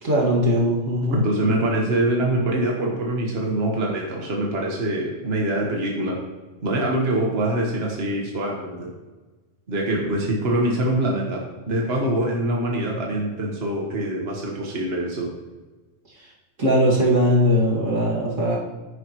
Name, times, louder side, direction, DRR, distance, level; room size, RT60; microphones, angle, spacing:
voice 1, 0.0-1.2 16.6-18.6, equal, 85° right, -5 dB, 2.7 m, -20 dB
voice 2, 1.1-6.2 6.6-8.9 9.7-15.3, right 1 dB, 55° right, -1 dB, 1.6 m, -24 dB
10.0 x 9.8 x 3.1 m, 1.2 s
omnidirectional pair, 1.3 m